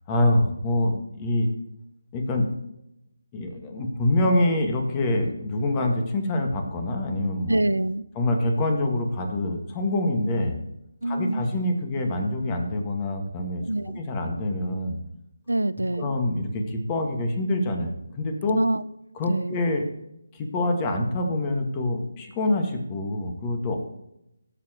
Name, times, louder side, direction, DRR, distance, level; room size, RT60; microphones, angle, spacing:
voice 1, 0.1-1.5 2.1-2.5 3.3-7.6 8.1-10.5 11.1-13.6 14.0-15.0 16.0-18.6 19.2-19.8 20.3-23.8, left 1 dB, 20° left, 3 dB, 1.6 m, -25 dB
voice 2, 7.5-8.0 11.0-11.4 13.6-14.0 15.5-16.2 18.5-18.8 19.3-19.6, right 1 dB, 85° right, 15 dB, 0.5 m, -25 dB
16.0 x 7.8 x 3.0 m, 0.82 s
figure-of-eight pair, 155°, 0 cm